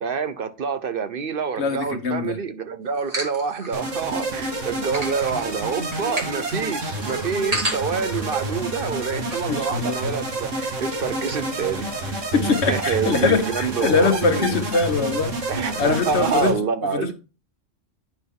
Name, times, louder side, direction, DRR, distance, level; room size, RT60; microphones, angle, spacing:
voice 1, 0.0-12.1 12.4-14.6 15.5-17.1, right 6 dB, 50° right, 0.8 m, -27 dB
voice 2, 1.6-2.4 9.5-10.2 12.3-15.3 15.8-16.5 16.9-17.1, left 4 dB, 60° left, 1.4 m, -22 dB
sound 1, 2.9-4.2 4.7-9.5 9.8-9.9 10.1-10.6, right 1 dB, 30° right, 1.8 m, -33 dB
sound 2, 3.7-16.5, right 1 dB, 75° right, 2.1 m, -29 dB
9.3 x 6.0 x 3.6 m
omnidirectional pair, 1.3 m